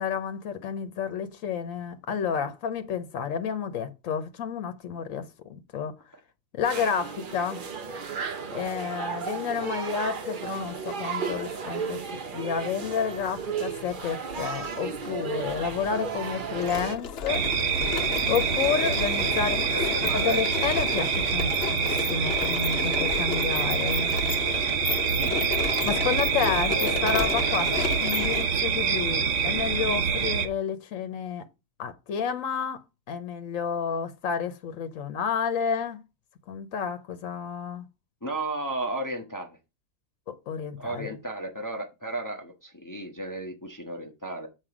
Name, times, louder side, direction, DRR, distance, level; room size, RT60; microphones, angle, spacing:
voice 1, 0.0-5.9 6.6-7.6 8.5-12.0 12.3-17.5 18.3-19.8 20.1-24.1 25.8-31.4 31.8-36.0 36.5-37.8 40.3-41.2, left 7 dB, 80° left, 1.1 m, -30 dB
sound 1, 6.6-17.0, right 6 dB, 45° right, 0.8 m, -34 dB
sound 2, 12.6-12.9 13.9-14.7 15.0-15.1 15.5-28.4, left 7 dB, 55° left, 1.0 m, -33 dB
sound 3, 17.3-30.5, right 6 dB, 65° right, 1.3 m, -26 dB
voice 2, 19.7-20.4 22.8-23.0 25.2-25.5 26.7-27.0 27.4-27.6 38.2-39.6 40.8-44.5, right 1 dB, 15° left, 1.0 m, -34 dB
7.6 x 4.7 x 4.9 m
omnidirectional pair, 1.4 m